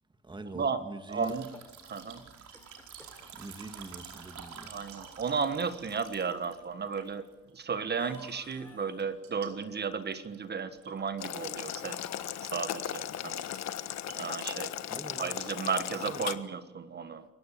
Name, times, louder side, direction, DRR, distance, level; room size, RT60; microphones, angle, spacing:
voice 1, 0.2-1.4 3.3-4.7 14.9-15.3 16.0-16.2, right 2 dB, 15° right, 1.8 m, -43 dB
voice 2, 1.1-1.5 1.9-2.2 4.7-7.2 7.5-12.0 12.4-13.5 14.1-14.7 15.2-17.3, right 5 dB, 35° right, 1.5 m, -34 dB
sound 1, 1.1-7.6 7.9-8.7 9.0-11.3 11.6-12.9 13.2-13.3 13.5-14.4 14.7-14.9 15.3-16.3, right 7 dB, 70° right, 4.8 m, -50 dB
sound 2, 1.5-2.1 2.5-3.3 4.1-4.2 4.4-4.5 5.5-5.6 8.0-9.0 11.9-13.0, left 1 dB, 5° left, 5.4 m, -55 dB
Boiling, 11.2-16.3, left 11 dB, 65° left, 1.4 m, -37 dB
28.0 x 15.5 x 8.5 m
cardioid pair, 110°, 29 cm